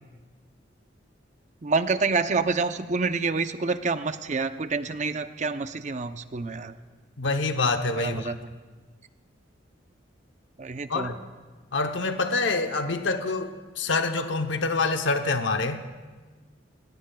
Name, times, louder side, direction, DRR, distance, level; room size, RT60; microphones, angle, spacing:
voice 1, 1.6-6.7 8.0-8.5 10.6-11.2, right 4 dB, 40° right, 10 dB, 0.6 m, -27 dB
voice 2, 7.2-8.3 10.9-11.2 11.7-15.8, left 3 dB, 75° left, 7 dB, 0.8 m, -26 dB
28.0 x 17.5 x 2.3 m, 1.4 s
head